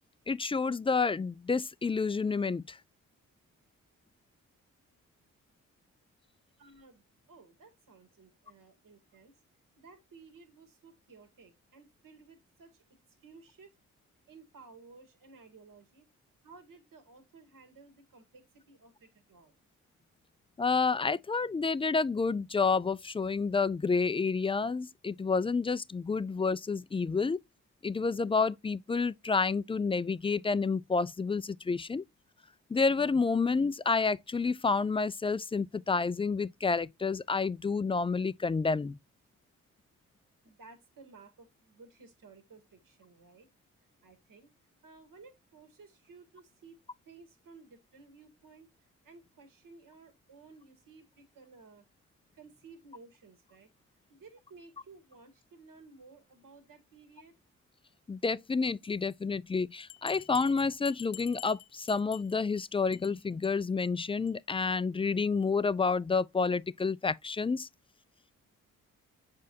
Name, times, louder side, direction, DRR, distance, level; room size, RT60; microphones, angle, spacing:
voice 1, 0.3-2.8 20.6-27.4 27.8-32.0 32.7-39.0 58.1-67.7, left 4 dB, 15° left, 0.3 m, -29 dB
voice 2, 6.6-7.0 7.3-9.4 9.8-13.8 14.3-16.1 16.4-19.6 40.4-43.5 44.0-44.5 44.8-48.7 49.0-51.9 52.3-53.7 54.1-57.4, right 4 dB, 60° right, 2.1 m, -56 dB
Bell, 59.9-62.6 62.9-63.1 63.4-63.5 63.9-64.0 64.3-64.4, left 15 dB, 85° left, 0.7 m, -48 dB
7.4 x 5.2 x 2.7 m
hypercardioid pair, 40°, 37 cm